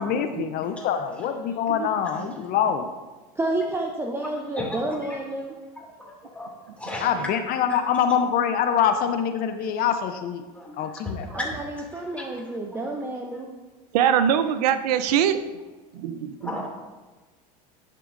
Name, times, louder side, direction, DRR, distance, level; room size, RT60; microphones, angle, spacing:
voice 1, 0.0-2.9 7.0-10.4 10.8-11.4, left 8 dB, 50° left, 8 dB, 0.6 m, -25 dB
voice 2, 3.4-5.5 11.3-13.5, right 2 dB, 10° right, 1 dB, 0.6 m, -30 dB
voice 3, 5.8-6.5 6.8-7.1 10.5-10.7 11.0-11.5 12.2-12.3 16.4-16.7, left 1 dB, 5° left, -2 dB, 2.3 m, -34 dB
voice 4, 13.9-15.4 15.9-16.5, right 9 dB, 85° right, 11 dB, 0.5 m, -22 dB
11.0 x 6.5 x 2.5 m, 1.2 s
supercardioid pair, 105°, 20 cm